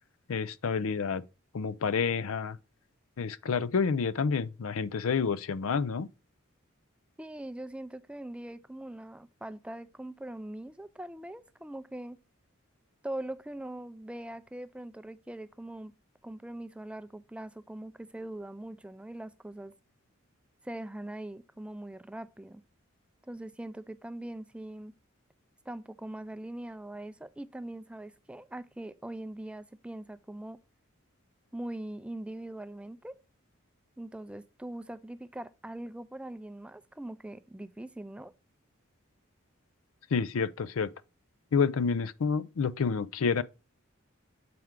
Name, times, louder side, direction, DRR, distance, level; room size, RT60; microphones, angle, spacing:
voice 1, 0.3-1.2 1.5-2.6 3.2-6.1 40.1-40.9 41.5-43.4, left 5 dB, 80° left, 0.5 m, -29 dB
voice 2, 7.2-12.2 13.0-15.9 16.2-19.7 20.6-22.6 23.2-24.9 25.7-30.6 31.5-33.2 34.0-38.3, right 1 dB, 5° right, 0.4 m, -42 dB
7.7 x 4.5 x 3.6 m
head